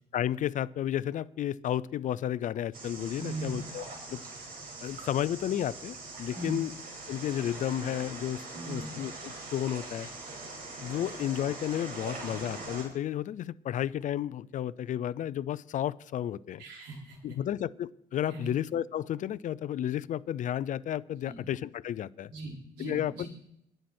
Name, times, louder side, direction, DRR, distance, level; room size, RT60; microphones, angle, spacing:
voice 1, 0.1-4.3 4.8-6.7 7.1-10.1 10.8-16.6 17.2-22.3 22.8-23.3, left 11 dB, 50° left, 19 dB, 0.4 m, -32 dB
sound 1, 2.7-12.8, right 3 dB, 60° right, 5.2 m, -42 dB
voice 2, 3.2-3.6 6.3-6.6 8.5-8.9 11.0-11.1 16.6-17.2 18.3-18.5 21.2-21.4 22.3-23.3, right 2 dB, 75° right, -2 dB, 5.0 m, -39 dB
21.0 x 7.7 x 4.4 m, 0.80 s
cardioid pair, 110°, 17 cm